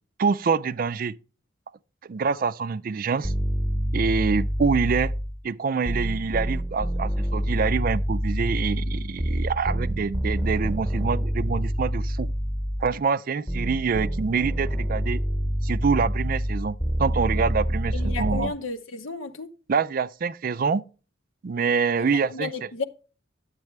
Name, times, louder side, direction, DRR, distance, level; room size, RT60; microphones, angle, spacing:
voice 1, 0.2-1.2 2.0-3.3 3.9-5.1 5.4-12.3 12.8-15.2 15.6-18.5 19.7-20.8 21.4-22.7, right 5 dB, 45° right, 0.4 m, -26 dB
sound 1, 3.2-5.4 5.9-13.0 13.5-18.5, equal, 5° left, 1.0 m, -27 dB
voice 2, 17.9-19.5 22.3-22.8, left 4 dB, 85° left, 0.9 m, -32 dB
10.5 x 8.1 x 3.2 m
head